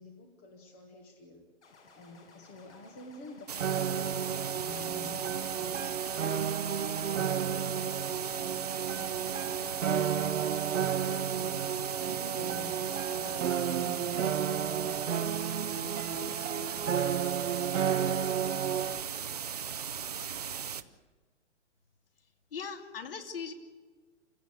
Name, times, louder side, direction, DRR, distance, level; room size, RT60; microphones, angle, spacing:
voice 1, 0.0-1.5 1.8-16.8 17.7-18.3, left 2 dB, 15° left, 4 dB, 0.9 m, -50 dB
sound 1, 1.6-17.6, left 3 dB, 65° left, 6.7 m, -57 dB
sound 2, 3.5-20.8, right 8 dB, 35° right, 0.7 m, -38 dB
sound 3, 3.6-19.0, right 8 dB, 80° right, 1.1 m, -32 dB
voice 2, 22.5-23.5, left 6 dB, 50° left, 6 dB, 2.7 m, -39 dB
27.5 x 17.0 x 8.3 m, 1.4 s
hypercardioid pair, 175°, 37 cm